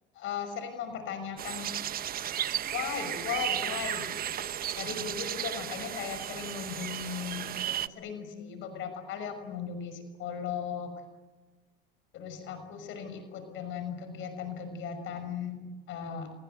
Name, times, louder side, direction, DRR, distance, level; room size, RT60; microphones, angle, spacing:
voice 1, 0.1-1.7 2.6-4.4 4.8-10.9 12.1-16.3, left 7 dB, 65° left, 8 dB, 6.1 m, -37 dB
sound 1, 1.4-7.9, right 10 dB, 45° right, 1.0 m, -34 dB
30.0 x 22.5 x 8.0 m, 1.3 s
cardioid pair, 105°, 21 cm